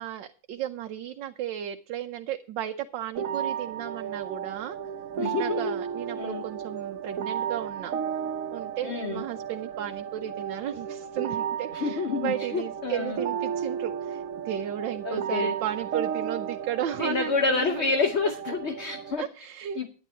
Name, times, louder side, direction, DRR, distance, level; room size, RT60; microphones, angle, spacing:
voice 1, 0.0-4.8 5.3-7.9 8.5-17.9 18.3-18.4 19.2-19.9, right 10 dB, 75° right, 6 dB, 1.5 m, -34 dB
sound 1, 3.1-19.1, right 8 dB, 50° right, 1.3 m, -33 dB
voice 2, 5.2-5.7 6.2-6.4 8.8-9.2 11.7-13.2 15.0-15.5 17.0-19.2 19.8-19.9, left 4 dB, 45° left, 8 dB, 0.9 m, -28 dB
11.0 x 10.0 x 4.4 m, 0.39 s
omnidirectional pair, 2.1 m